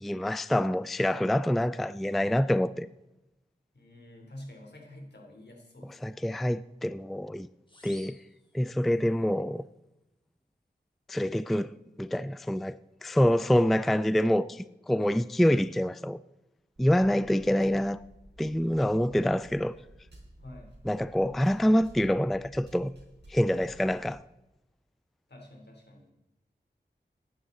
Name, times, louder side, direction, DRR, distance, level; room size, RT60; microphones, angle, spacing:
voice 1, 0.0-2.9 6.0-7.5 7.8-8.2 8.5-9.6 11.1-11.7 12.0-16.2 16.8-18.0 18.4-19.7 20.9-22.9 23.3-24.2, equal, ahead, 0.3 m, -26 dB
voice 2, 3.7-6.3 20.4-20.7 25.3-26.1, left 1 dB, 70° left, 3.4 m, -48 dB
sound 1, 7.7-9.2, left 1 dB, 30° left, 2.0 m, -54 dB
sound 2, 16.8-24.1, right 1 dB, 75° right, 4.7 m, -53 dB
15.0 x 11.0 x 4.0 m
wide cardioid pair, 60°, 18 cm